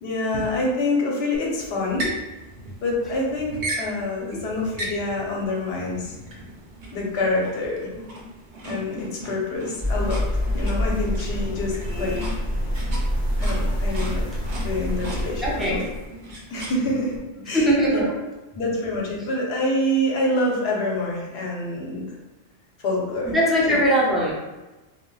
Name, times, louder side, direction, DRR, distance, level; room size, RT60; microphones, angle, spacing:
voice 1, 0.0-2.1 2.8-6.1 6.9-7.9 8.6-10.2 10.5-12.3 13.4-14.2 14.6-15.8 16.5-18.1 18.5-22.1 22.8-23.3 23.6-23.8, left 1 dB, 70° left, -2 dB, 0.9 m, -26 dB
sound 1, 1.3-17.2, right 1 dB, 45° right, 0.6 m, -37 dB
sound 2, 9.8-16.1, left 1 dB, 20° right, 0.9 m, -26 dB
voice 2, 15.4-15.8 17.5-18.1 23.2-24.3, equal, ahead, -7 dB, 0.4 m, -20 dB
2.1 x 2.0 x 3.7 m, 1.1 s
omnidirectional pair, 1.1 m